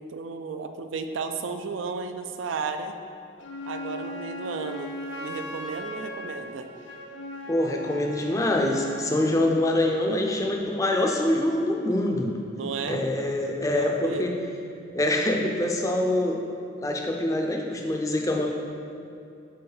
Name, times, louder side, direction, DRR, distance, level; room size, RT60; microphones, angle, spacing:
voice 1, 0.0-3.0 3.7-4.9 5.2-6.7 12.6-13.0 13.7-14.3, right 4 dB, 80° right, 8 dB, 0.4 m, -33 dB
Wind instrument woodwind instrument, 3.4-9.4, equal, 75° left, 0.6 m, -38 dB
voice 2, 7.5-12.3 12.9-14.3 14.9-16.4 16.8-18.5, left 1 dB, 15° left, 1 dB, 0.4 m, -25 dB
4.7 x 4.3 x 4.9 m, 2.7 s
head